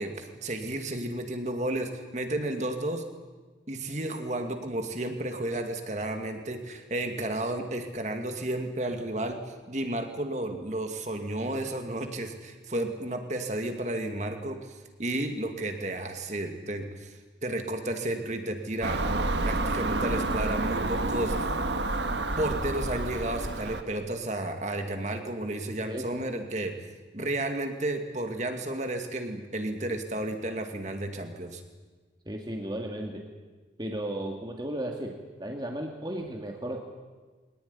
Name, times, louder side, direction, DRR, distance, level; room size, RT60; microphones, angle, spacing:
voice 1, 0.0-3.0 3.7-19.1 19.4-21.5 22.4-26.8 27.1-31.6, right 1 dB, 40° right, 5 dB, 2.4 m, -32 dB
Car passing by / Engine, 18.8-23.8, right 2 dB, 75° right, 1.6 m, -29 dB
voice 2, 25.9-26.2 32.3-33.2 33.8-36.8, right 1 dB, 25° right, 2 dB, 2.0 m, -35 dB
23.0 x 19.0 x 9.8 m, 1.4 s
head